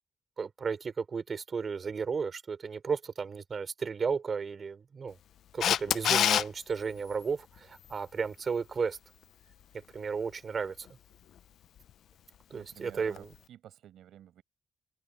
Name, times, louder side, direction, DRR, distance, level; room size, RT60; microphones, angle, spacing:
voice 1, 0.4-5.2 5.5-9.0 9.9-10.9 12.5-13.3, right 5 dB, 45° right, 5.4 m, -34 dB
Camera, 5.6-6.4 13.2-13.3, left 10 dB, 75° left, 0.6 m, -24 dB
voice 2, 12.5-14.4, right 11 dB, 85° right, 5.5 m, -52 dB
cardioid pair, 90°, 0 cm